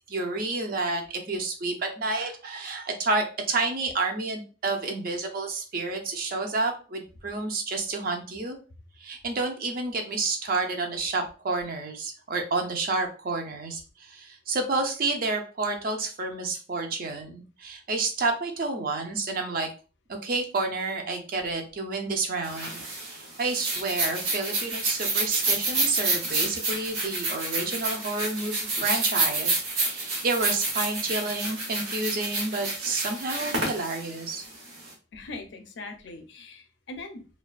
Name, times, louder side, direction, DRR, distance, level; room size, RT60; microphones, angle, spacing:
voice 1, 0.1-8.6 9.0-19.7 20.1-34.4, right 3 dB, 45° right, 3 dB, 0.4 m, -30 dB
sound 1, 22.4-34.9, right 2 dB, 85° right, 1.0 m, -29 dB
voice 2, 35.1-37.3, left 2 dB, 60° left, 6 dB, 0.4 m, -41 dB
2.3 x 2.2 x 2.3 m, 0.35 s
head